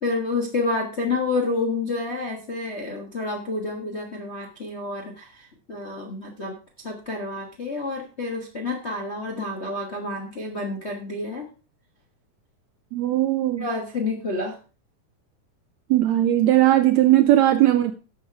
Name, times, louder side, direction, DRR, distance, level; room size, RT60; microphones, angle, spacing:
voice 1, 0.0-6.6 6.8-11.5 13.6-14.6, left 3 dB, 45° left, 1 dB, 0.8 m, -29 dB
voice 2, 12.9-13.6 15.9-17.9, right 13 dB, 75° right, 10 dB, 1.7 m, -18 dB
11.5 x 6.7 x 4.7 m, 0.34 s
omnidirectional pair, 3.8 m